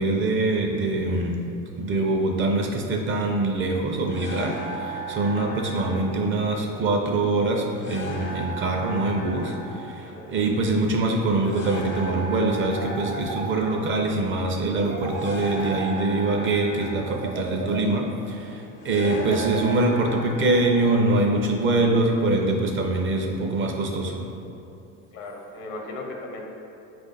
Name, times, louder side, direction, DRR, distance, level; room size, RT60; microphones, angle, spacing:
voice 1, 0.0-1.4 1.8-24.2, right 2 dB, 30° right, 2 dB, 0.5 m, -24 dB
sound 1, 4.1-21.8, right 2 dB, 30° left, 0.4 m, -37 dB
sound 2, 12.7-14.0 14.8-16.4 17.1-18.2 19.0-20.2, right 3 dB, 70° right, 0.9 m, -35 dB
voice 2, 25.1-26.4, left 2 dB, 80° left, 1 dB, 0.9 m, -37 dB
4.9 x 2.5 x 3.9 m, 2.7 s
supercardioid pair, 95°, 40 cm